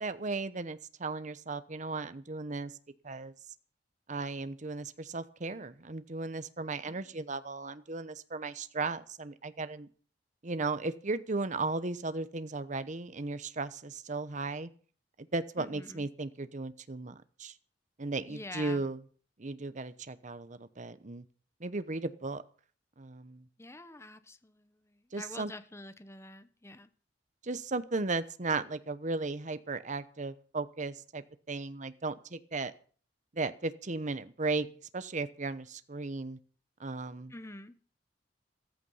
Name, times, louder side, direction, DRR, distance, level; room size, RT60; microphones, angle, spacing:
voice 1, 0.0-2.7 3.0-3.3 4.1-9.9 10.4-14.7 15.2-17.5 18.0-19.0 19.4-21.2 21.6-22.4 23.0-23.4 25.1-25.5 27.4-32.7 33.3-34.7 34.9-36.4 36.8-37.3, right 3 dB, 45° right, 13 dB, 0.9 m, -36 dB
voice 2, 15.6-16.1 18.3-18.8 23.6-26.9 37.3-37.7, left 2 dB, 15° left, 12 dB, 1.0 m, -47 dB
14.5 x 14.0 x 5.6 m, 0.43 s
head